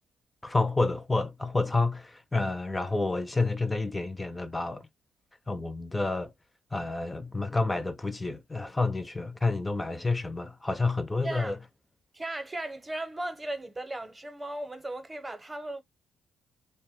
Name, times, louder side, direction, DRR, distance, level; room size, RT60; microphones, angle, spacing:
voice 1, 0.4-4.9 5.5-6.3 6.7-11.6, left 3 dB, 15° left, 0.4 m, -29 dB
voice 2, 11.2-11.5 12.1-15.8, right 1 dB, 15° right, 0.7 m, -36 dB
2.6 x 2.1 x 3.4 m
cardioid pair, 90°, 0 cm